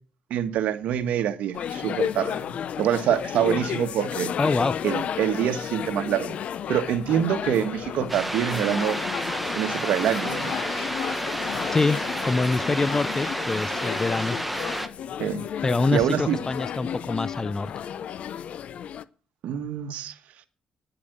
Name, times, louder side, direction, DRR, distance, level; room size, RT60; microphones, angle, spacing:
voice 1, 0.3-2.4 2.8-4.3 4.8-6.3 6.7-9.0 9.5-10.5 15.2-15.5 15.9-16.4 19.4-20.1, right 10 dB, 80° right, 1.5 m, -25 dB
sound 1, 1.5-19.0, left 9 dB, 65° left, 0.7 m, -32 dB
voice 2, 4.4-4.8 11.7-14.4 15.6-17.7, left 3 dB, 25° left, 0.6 m, -25 dB
sound 2, 8.1-14.9, right 1 dB, 5° right, 1.3 m, -30 dB
10.5 x 8.6 x 8.1 m
cardioid pair, 95°, 2 cm